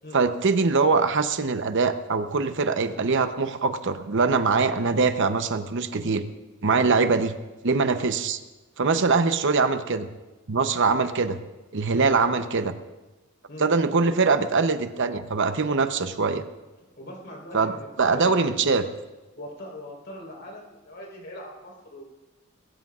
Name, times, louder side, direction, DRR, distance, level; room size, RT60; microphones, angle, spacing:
voice 1, 0.1-6.2 6.6-7.3 7.6-8.4 8.8-10.1 10.5-11.4 11.7-12.7 13.6-16.4 17.5-17.7 18.0-18.8, right 4 dB, 60° right, 9 dB, 0.8 m, -23 dB
voice 2, 17.0-18.6 19.4-22.0, equal, 55° left, -2 dB, 4.2 m, -41 dB
20.5 x 17.0 x 2.5 m, 1.1 s
head